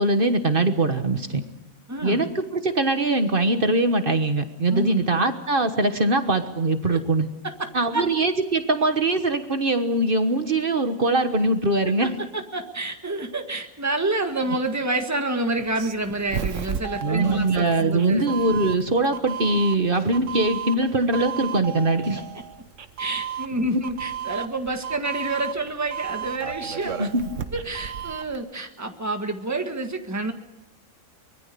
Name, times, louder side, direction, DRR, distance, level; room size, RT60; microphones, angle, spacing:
voice 1, 0.0-1.4 2.0-7.3 7.7-12.2 17.0-22.2 23.7-23.8 27.0-27.2, right 2 dB, 40° right, 8 dB, 1.5 m, -22 dB
voice 2, 1.9-2.3 4.7-5.0 6.9-7.0 7.4-8.1 11.8-18.3 23.0-27.1 27.5-30.3, right 2 dB, 10° right, 5 dB, 1.6 m, -28 dB
Doorbell, 15.6-28.4, right 8 dB, 60° right, 1.3 m, -34 dB
24.0 x 21.0 x 6.9 m, 0.92 s
omnidirectional pair, 1.5 m